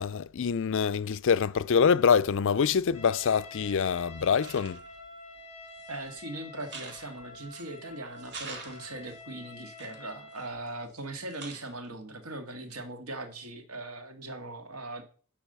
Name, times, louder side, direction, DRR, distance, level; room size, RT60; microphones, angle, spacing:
voice 1, 0.0-4.8, left 6 dB, 60° left, 0.5 m, -25 dB
Trumpet, 2.9-10.6, left 2 dB, 30° left, 3.0 m, -48 dB
sound 1, 3.6-3.7 4.2-5.0 5.7-6.2 6.6-7.8 8.2-9.2 9.7-11.0 11.3-11.9, right 4 dB, 55° right, 2.2 m, -46 dB
voice 2, 5.9-15.0, right 2 dB, 80° right, 2.0 m, -40 dB
12.0 x 4.8 x 6.8 m
head